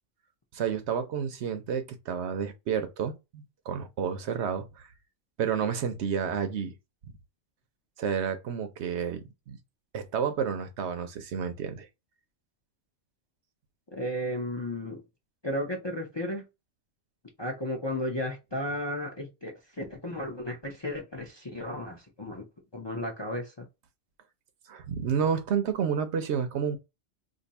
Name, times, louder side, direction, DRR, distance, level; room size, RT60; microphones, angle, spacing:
voice 1, 0.5-4.9 5.4-6.7 8.0-9.6 9.9-11.9 24.7-26.8, right 7 dB, 65° right, 0.9 m, -30 dB
voice 2, 13.9-15.0 15.4-16.4 17.4-22.5 22.7-23.7, left 1 dB, 30° left, 0.5 m, -34 dB
2.6 x 2.6 x 4.1 m
omnidirectional pair, 1.3 m